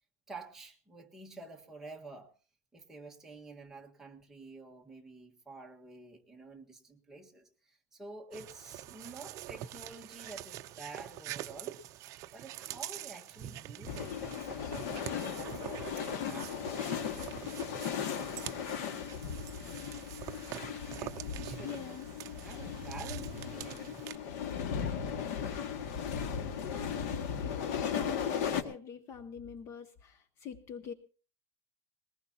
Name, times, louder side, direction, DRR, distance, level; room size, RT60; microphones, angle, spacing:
voice 1, 0.3-2.3 2.7-11.8 12.3-16.9 21.0-21.8 22.3-24.3, right 3 dB, 5° right, -1 dB, 1.5 m, -49 dB
sound 1, 8.3-24.2, right 13 dB, 40° right, 0.7 m, -45 dB
sound 2, 13.9-28.6, left 7 dB, 80° left, 1.9 m, -37 dB
voice 2, 21.6-22.1 26.6-30.9, left 7 dB, 35° left, 12 dB, 0.7 m, -45 dB
21.0 x 19.0 x 2.8 m, 0.38 s
cardioid pair, 165°, 8 cm